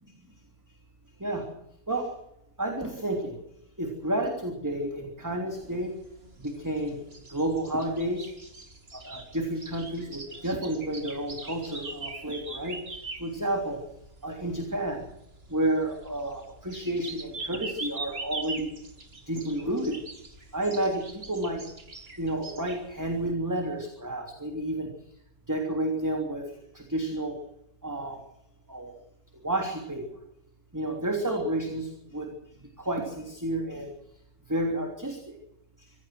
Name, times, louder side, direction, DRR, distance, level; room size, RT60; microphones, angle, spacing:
voice 1, 2.6-3.4 3.8-5.9 6.4-7.0 7.3-8.3 8.9-12.8 13.2-13.8 14.2-15.0 15.5-18.7 19.3-20.0 20.5-21.6 22.2-24.9 25.5-26.5 26.7-27.4 27.8-28.2 28.7-28.9 29.4-30.0 30.7-32.3 32.8-33.9 34.5-35.3, right 1 dB, 10° right, 2 dB, 3.2 m, -30 dB
sound 1, 5.5-23.3, right 3 dB, 40° right, 2.7 m, -43 dB
25.5 x 17.0 x 6.3 m, 0.80 s
omnidirectional pair, 1.7 m